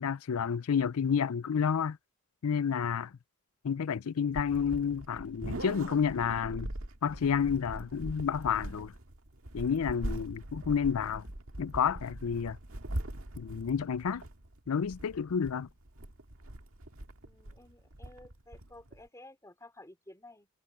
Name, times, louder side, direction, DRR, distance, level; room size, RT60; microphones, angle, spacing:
voice 1, 0.0-2.0 2.4-3.1 3.6-6.7 7.0-8.9 9.5-11.2 11.6-12.6 13.4-14.2 14.7-15.7, left 7 dB, 80° left, 0.5 m, -30 dB
sound 1, 4.3-19.1, right 1 dB, 75° right, 1.9 m, -42 dB
voice 2, 17.2-20.5, left 2 dB, 15° left, 4.7 m, -53 dB
head